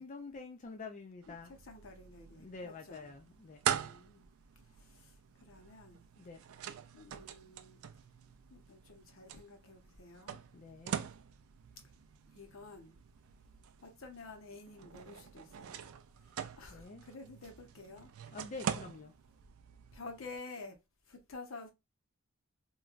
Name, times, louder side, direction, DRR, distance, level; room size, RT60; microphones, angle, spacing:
voice 1, 0.0-1.5 2.4-3.6 6.2-6.4 10.5-11.1 16.7-17.0 18.3-19.1, left 3 dB, 35° left, 0.4 m, -47 dB
sound 1, 1.2-20.4, right 8 dB, 80° right, 0.4 m, -44 dB
voice 2, 1.5-3.1 3.7-4.3 4.8-5.2 5.4-6.0 6.9-7.8 8.5-10.4 12.3-13.0 13.8-15.8 16.6-18.1 19.9-20.8 21.1-21.7, left 3 dB, 70° left, 0.8 m, -50 dB
3.1 x 2.3 x 2.3 m
head